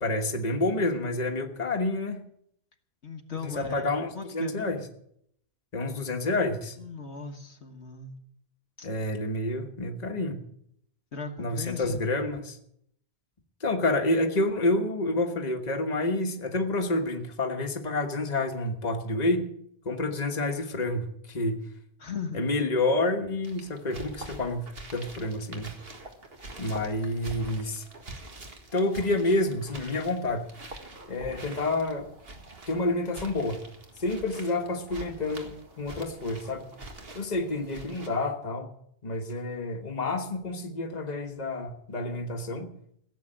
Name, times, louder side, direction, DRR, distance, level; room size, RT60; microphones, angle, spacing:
voice 1, 0.0-2.2 3.4-4.8 5.7-6.8 8.8-10.4 11.4-12.6 13.6-19.5 19.8-21.6 22.3-25.7 26.6-27.8 28.7-30.5 31.1-32.1 32.7-33.6 34.0-36.6 37.1-38.7 39.0-42.7, left 2 dB, 40° left, 4 dB, 1.5 m, -29 dB
voice 2, 3.0-3.9 4.1-4.8 6.8-8.2 8.8-8.9 11.1-12.0 22.0-22.4, left 4 dB, 75° left, 5 dB, 1.7 m, -37 dB
sound 1, 23.4-38.1, right 2 dB, 60° right, 2.1 m, -45 dB
16.5 x 7.7 x 8.9 m, 0.71 s
omnidirectional pair, 1.1 m